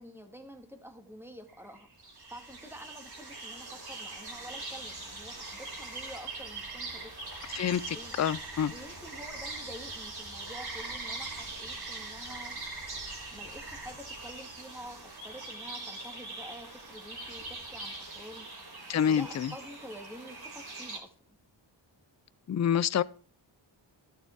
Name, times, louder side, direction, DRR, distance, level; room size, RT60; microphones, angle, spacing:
voice 1, 0.0-7.1 7.9-8.1 8.7-12.5 12.8-18.5 19.1-21.1, equal, 5° right, 2.2 m, -48 dB
sound 1, 1.5-21.0, right 3 dB, 50° right, 3.5 m, -42 dB
voice 2, 7.5-8.7 18.9-19.5 22.5-23.0, left 8 dB, 35° left, 0.4 m, -27 dB
12.5 x 6.8 x 4.6 m
wide cardioid pair, 75°, 47 cm